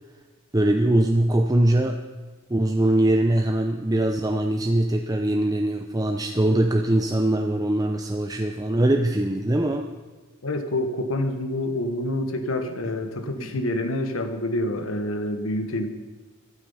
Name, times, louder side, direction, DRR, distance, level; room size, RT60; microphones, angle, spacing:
voice 1, 0.5-2.0 2.5-9.9 13.4-13.5, right 1 dB, 15° right, 4 dB, 0.6 m, -22 dB
voice 2, 10.4-15.9, left 1 dB, 80° left, 7 dB, 1.5 m, -27 dB
15.0 x 12.5 x 5.7 m, 1.3 s
head